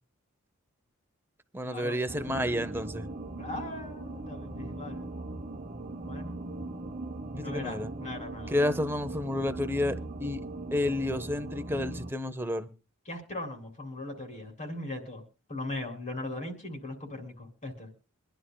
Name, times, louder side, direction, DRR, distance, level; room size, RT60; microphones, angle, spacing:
voice 1, 1.5-3.1 7.3-7.9 8.5-10.4 10.7-12.7, left 1 dB, 10° right, 0.8 m, -30 dB
sound 1, 2.1-12.1, right 2 dB, 35° right, 0.9 m, -39 dB
voice 2, 3.4-5.1 6.0-6.4 7.4-8.7 13.1-15.2 15.5-17.9, left 2 dB, 35° left, 3.0 m, -39 dB
24.5 x 11.5 x 2.2 m
head